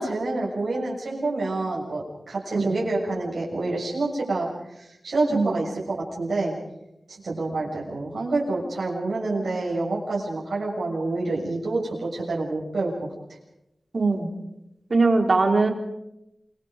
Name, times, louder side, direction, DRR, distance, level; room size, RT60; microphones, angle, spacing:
voice 1, 0.0-6.5 7.1-13.4, right 2 dB, 90° right, -4 dB, 6.9 m, -28 dB
voice 2, 5.3-5.6 13.9-14.3 14.9-15.7, right 3 dB, 60° right, 3 dB, 4.0 m, -21 dB
30.0 x 24.5 x 5.3 m, 0.88 s
wide cardioid pair, 80°, 0 cm